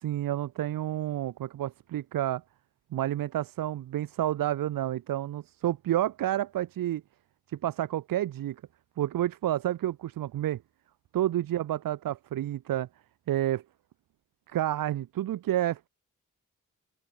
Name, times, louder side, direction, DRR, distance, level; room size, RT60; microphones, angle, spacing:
voice 1, 0.0-2.4 2.9-7.0 7.5-8.6 9.0-10.6 11.1-12.9 13.3-13.6 14.5-15.9, right 13 dB, 90° right, 1.0 m, -30 dB
open air
supercardioid pair, 45°, 33 cm